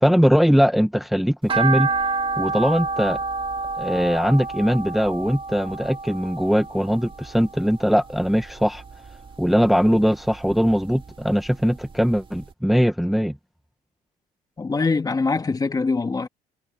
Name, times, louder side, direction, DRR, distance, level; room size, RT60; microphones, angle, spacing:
voice 1, 0.0-1.9 2.4-3.2 3.8-8.8 9.4-13.3, equal, ahead, 1.4 m, -20 dB
sound 1, 1.5-7.8 8.2-9.3 9.7-11.1 11.5-11.6 12.0-12.1 12.4-12.5, right 4 dB, 30° right, 2.4 m, -28 dB
voice 2, 14.6-16.3, left 4 dB, 20° left, 1.8 m, -23 dB
cardioid pair, 110°, 17 cm